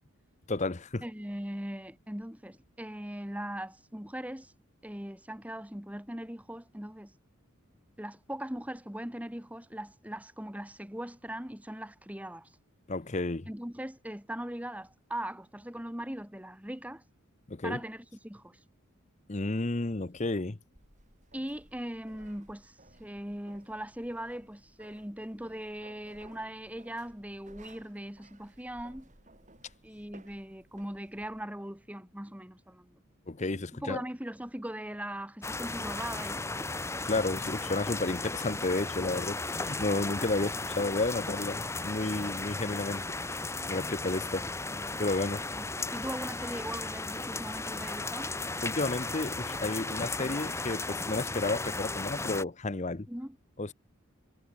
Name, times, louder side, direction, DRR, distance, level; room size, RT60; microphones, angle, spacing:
voice 1, 0.5-1.0 12.9-13.5 17.5-17.8 19.3-20.6 33.3-34.0 37.0-43.0 43.7-44.5 45.0-45.4 48.6-53.1 53.6-53.7, left 2 dB, 35° left, 0.8 m, -32 dB
voice 2, 1.0-4.5 4.8-7.1 8.0-12.5 13.5-17.0 17.6-18.6 21.3-29.1 29.8-33.0 33.8-36.7 37.3-37.4 45.5-48.3 53.1-53.4, right 1 dB, 5° right, 1.7 m, -40 dB
sound 1, 20.8-31.4, right 1 dB, 35° right, 7.8 m, -58 dB
sound 2, 35.4-52.4, left 3 dB, 15° left, 1.2 m, -35 dB
head